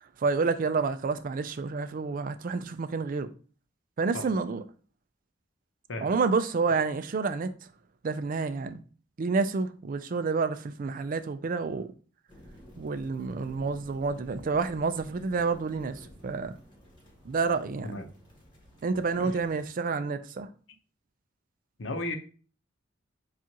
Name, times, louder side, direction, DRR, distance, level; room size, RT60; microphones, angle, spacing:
voice 1, 0.2-3.3 4.0-4.6 6.0-7.5 8.0-8.8 9.2-11.9 12.8-16.6 17.3-18.0 18.8-20.5, right 4 dB, 45° right, 0.4 m, -29 dB
voice 2, 5.9-6.2 17.8-18.1 19.2-19.4 21.8-22.2, left 1 dB, 80° left, 0.7 m, -35 dB
sound 1, 12.3-19.7, equal, 25° left, 1.5 m, -52 dB
7.2 x 2.4 x 2.8 m
head